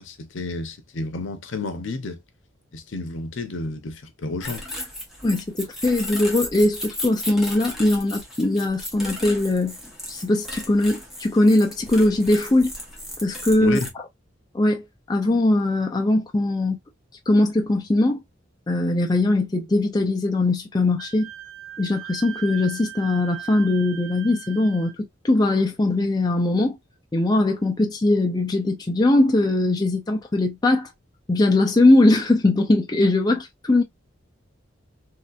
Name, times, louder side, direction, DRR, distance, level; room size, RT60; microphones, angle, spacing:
voice 1, 0.0-2.2 2.7-4.6 13.6-13.9, left 3 dB, 80° left, 0.7 m, -31 dB
sound 1, 4.4-13.9, left 1 dB, ahead, 1.1 m, -35 dB
voice 2, 5.2-9.8 10.1-12.7 13.2-13.8 14.5-16.8 17.3-18.2 18.7-21.3 21.8-24.9 25.2-26.8 27.1-30.9 31.3-33.8, left 2 dB, 20° left, 0.5 m, -20 dB
Wind instrument woodwind instrument, 21.0-24.9, right 12 dB, 80° right, 0.7 m, -39 dB
3.2 x 2.8 x 2.4 m
head